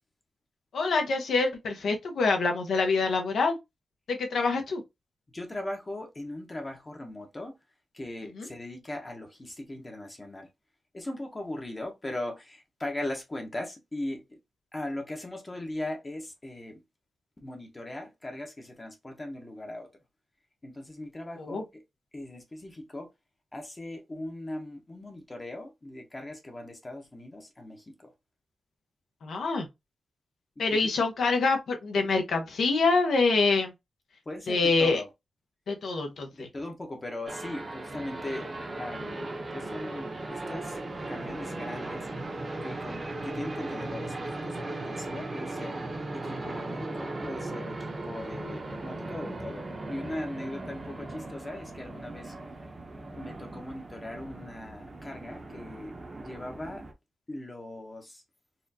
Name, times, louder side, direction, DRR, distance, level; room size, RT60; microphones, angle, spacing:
voice 1, 0.7-3.5 4.1-4.8 8.4-8.5 21.4-21.6 29.2-29.7 30.6-33.7 34.5-35.0 35.7-36.5, left 3 dB, 85° left, 1.0 m, -26 dB
voice 2, 5.3-7.5 7.9-10.5 10.9-14.4 14.7-16.8 17.4-19.9 20.6-21.8 22.1-23.1 23.5-28.1 30.7-30.8 34.3-35.1 36.3-38.5 38.8-40.8 41.1-42.1 42.6-45.8 46.1-52.3 53.1-56.8 57.3-58.2, left 1 dB, 25° left, 0.8 m, -39 dB
sound 1, 37.3-56.9, right 2 dB, 35° right, 0.7 m, -38 dB
4.2 x 2.4 x 2.7 m
wide cardioid pair, 135°, 0 cm